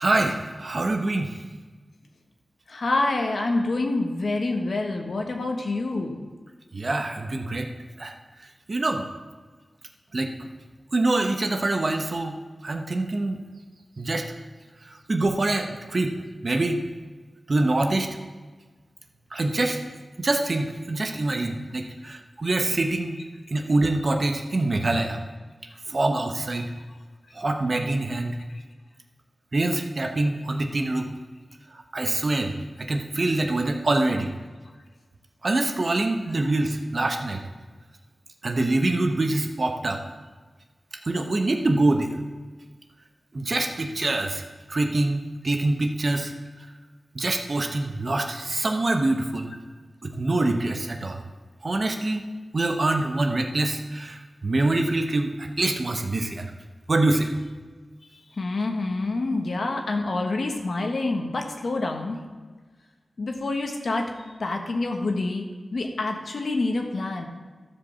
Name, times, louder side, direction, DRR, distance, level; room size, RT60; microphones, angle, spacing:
voice 1, 0.0-1.3 6.7-7.7 8.0-8.1 8.7-9.0 10.1-10.3 10.9-12.4 12.6-13.4 14.0-14.3 15.1-16.2 16.4-16.8 17.5-18.1 19.3-19.8 20.2-23.2 23.5-25.2 25.9-26.7 27.3-28.4 29.5-31.1 31.9-32.5 32.8-34.3 35.4-37.4 38.4-40.0 41.1-42.1 43.3-44.4 44.7-46.3 47.1-49.5 50.0-51.2 51.6-52.3 52.5-56.5 56.9-57.3, right 2 dB, 45° right, 4 dB, 1.0 m, -25 dB
voice 2, 2.7-6.2 58.4-62.2 63.2-64.1 64.4-65.4 65.7-67.3, left 2 dB, 65° left, 3 dB, 1.4 m, -27 dB
13.5 x 5.1 x 7.1 m, 1.4 s
wide cardioid pair, 100°, 0 cm